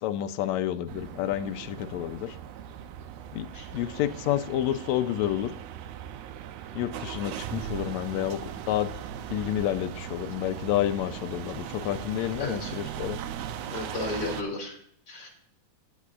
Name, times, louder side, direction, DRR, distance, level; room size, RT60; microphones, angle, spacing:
voice 1, 0.0-2.4 3.3-3.5 3.7-5.5 6.8-8.9 9.3-13.2, left 12 dB, 80° left, 10 dB, 1.8 m, -29 dB
sound 1, 0.9-14.4, right 9 dB, 80° right, 1.5 m, -39 dB
voice 2, 12.4-12.7 13.7-14.8 15.1-15.3, left 2 dB, 35° left, 0 dB, 3.5 m, -33 dB
16.5 x 8.4 x 2.4 m, 0.63 s
omnidirectional pair, 3.5 m